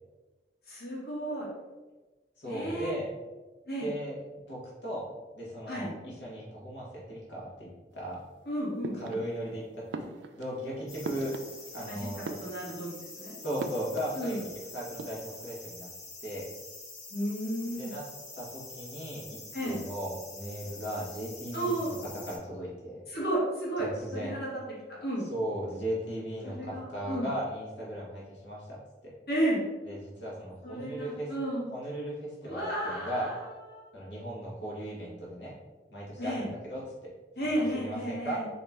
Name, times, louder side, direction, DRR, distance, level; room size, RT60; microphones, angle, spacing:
voice 1, 0.7-1.5 2.5-2.9 3.7-3.9 5.7-5.9 8.5-9.2 11.9-12.1 12.4-12.9 13.2-13.4 14.1-14.4 17.1-17.9 19.5-19.8 21.5-21.9 23.1-23.9 24.1-24.5 24.9-25.2 26.4-27.3 29.3-29.6 30.6-31.6 32.4-33.5 33.7-34.1 36.2-36.5 37.4-38.4, right 1 dB, 60° left, -5 dB, 1.3 m, -33 dB
voice 2, 2.4-3.1 3.8-4.1 4.5-5.1 5.3-7.7 7.9-8.2 8.9-9.8 10.3-11.3 11.7-12.2 13.4-14.4 14.7-15.9 16.2-16.5 17.8-18.1 18.3-23.0 23.8-24.3 25.3-28.8 29.0-29.1 29.8-31.3 31.7-33.3 33.9-35.5 35.9-37.1 37.7-38.4, equal, 90° left, -5 dB, 1.3 m, -37 dB
sound 1, 8.8-9.5 9.9-11.9 12.1-13.0 13.6-14.6 14.8-15.4, right 3 dB, 90° right, 0.4 m, -41 dB
sound 2, 10.9-22.4, left 3 dB, 40° left, 1.0 m, -46 dB
4.1 x 2.9 x 3.5 m, 1.2 s
head